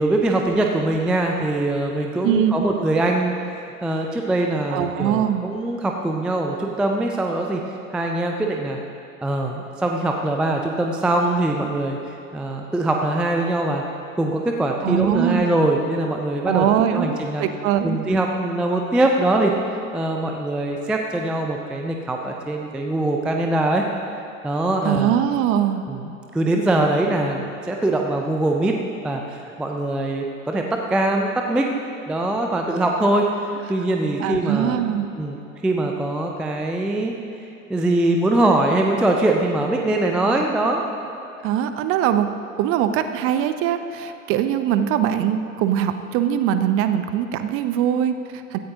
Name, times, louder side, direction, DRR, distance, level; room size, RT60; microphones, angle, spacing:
voice 1, 0.0-7.6 7.9-8.8 9.2-12.0 12.3-13.8 14.2-17.4 17.8-19.5 19.9-23.9 24.4-25.2 25.9-28.7 29.0-31.7 32.1-33.3 33.7-34.8 35.2-35.4 35.6-37.1 37.7-40.8, right 2 dB, ahead, 2 dB, 0.4 m, -22 dB
voice 2, 2.2-2.7 4.7-5.5 14.8-15.4 16.5-18.0 24.8-25.8 34.2-35.1 41.4-42.3 42.6-48.6, right 10 dB, 35° right, 10 dB, 0.7 m, -22 dB
16.0 x 13.5 x 2.8 m, 2.9 s
figure-of-eight pair, 90°, 41 cm